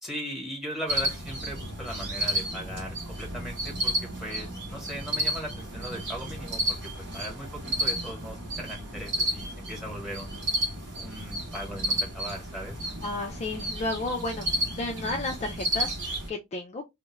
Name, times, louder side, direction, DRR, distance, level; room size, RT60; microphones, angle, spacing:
voice 1, 0.0-3.9 4.2-10.5 11.0-12.8, equal, ahead, 1.0 m, -38 dB
sound 1, 0.9-16.3, equal, 55° right, 0.8 m, -32 dB
voice 2, 13.0-14.5 14.8-16.8, left 2 dB, 30° left, 0.3 m, -32 dB
2.3 x 2.0 x 3.0 m
head